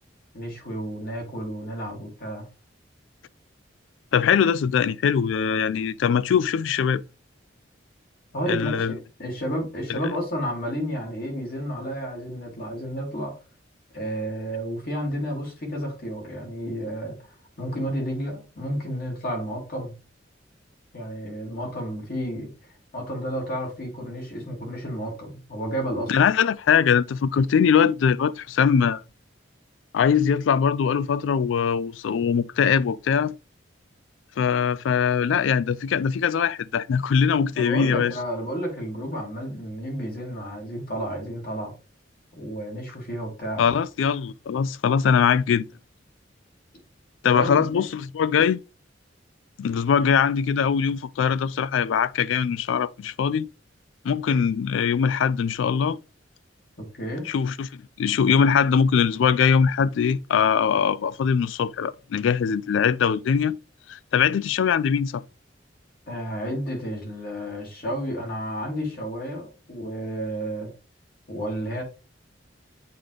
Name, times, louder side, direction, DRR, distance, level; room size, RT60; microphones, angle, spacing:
voice 1, 0.3-2.5 8.3-13.3 13.9-19.9 20.9-22.5 22.9-26.3 37.5-41.7 42.4-43.7 47.3-47.8 56.8-57.3 66.1-70.7 71.3-71.8, equal, 50° left, 2.5 m, -31 dB
voice 2, 4.1-7.0 8.5-8.9 9.9-10.0 26.1-29.0 29.9-33.4 34.4-38.1 43.6-45.7 47.2-48.6 49.6-53.5 54.0-56.0 57.3-57.7 58.0-63.6 63.9-65.2, left 7 dB, 75° left, 0.3 m, -22 dB
7.7 x 3.8 x 3.3 m
head